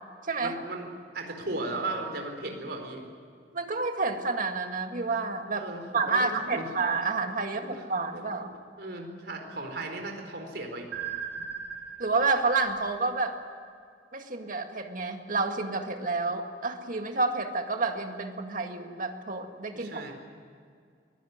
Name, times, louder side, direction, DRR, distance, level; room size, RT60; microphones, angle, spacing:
voice 1, 0.4-0.9 1.1-3.0 5.5-6.7 7.6-7.9 8.4-8.5 8.8-10.9 11.4-11.5 19.7-20.1, right 2 dB, 65° right, 4 dB, 4.4 m, -36 dB
voice 2, 3.5-5.7 5.9-8.6 12.0-13.4 14.1-20.0, right 3 dB, 50° right, 5 dB, 2.0 m, -29 dB
sound 1, 10.9-13.8, right 7 dB, 90° right, 3.4 m, -39 dB
23.5 x 17.0 x 9.6 m, 2.2 s
head